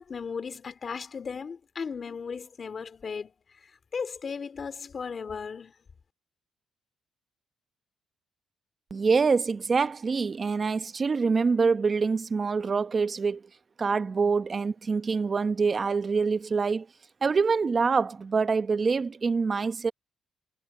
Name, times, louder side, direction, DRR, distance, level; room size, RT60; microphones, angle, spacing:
voice 1, 0.0-3.3 3.6-5.7, left 5 dB, 40° left, 2.4 m, -36 dB
voice 2, 8.9-13.4 13.8-16.9 17.2-19.9, right 4 dB, 35° right, 1.0 m, -25 dB
cardioid pair, 90°, 0 cm